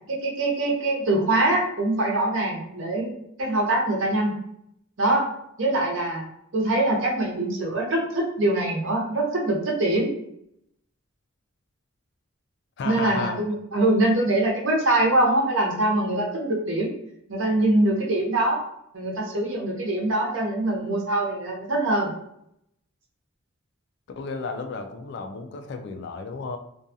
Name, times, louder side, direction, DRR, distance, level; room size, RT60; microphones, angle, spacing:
voice 1, 0.1-3.1 3.4-4.4 5.0-5.3 5.6-6.3 6.5-10.1 12.8-16.9 17.3-18.6 18.9-22.1, right 1 dB, 70° right, -1 dB, 0.7 m, -23 dB
voice 2, 12.8-13.4 24.2-26.6, left 4 dB, 55° left, 6 dB, 0.3 m, -33 dB
2.5 x 2.3 x 2.6 m, 0.74 s
head